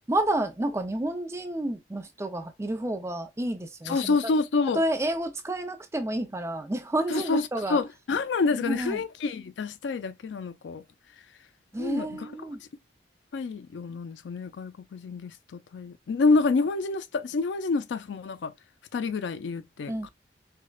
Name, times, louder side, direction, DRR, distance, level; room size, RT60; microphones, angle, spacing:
voice 1, 0.1-4.2 4.7-7.8 8.5-9.0 11.7-12.6 19.9-20.1, right 1 dB, 15° right, 0.5 m, -30 dB
voice 2, 3.9-4.8 7.1-10.8 11.8-12.3 13.3-18.5 18.9-20.1, left 4 dB, 90° left, 0.4 m, -28 dB
4.4 x 2.1 x 2.3 m
head